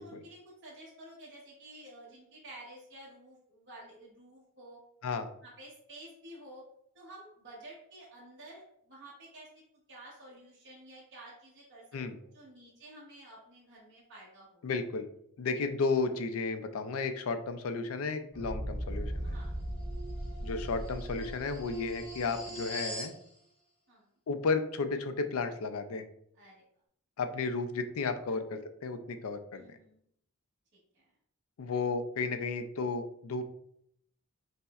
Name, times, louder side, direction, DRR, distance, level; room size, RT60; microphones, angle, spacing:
voice 1, 0.0-4.8 5.4-6.6 6.9-9.5 9.9-11.8 12.3-14.6 19.2-19.6 23.9-24.1 26.3-26.6 28.3-28.4 29.5-30.0 31.7-31.8, right 1 dB, 50° right, -7 dB, 1.0 m, -51 dB
voice 2, 14.6-15.1 15.4-19.3 20.4-23.1 24.3-26.1 27.2-29.8 31.6-33.4, left 4 dB, 70° left, 8 dB, 0.4 m, -33 dB
sound 1, 18.3-23.2, right 1 dB, 25° right, 1.2 m, -38 dB
5.3 x 2.1 x 2.4 m, 0.70 s
head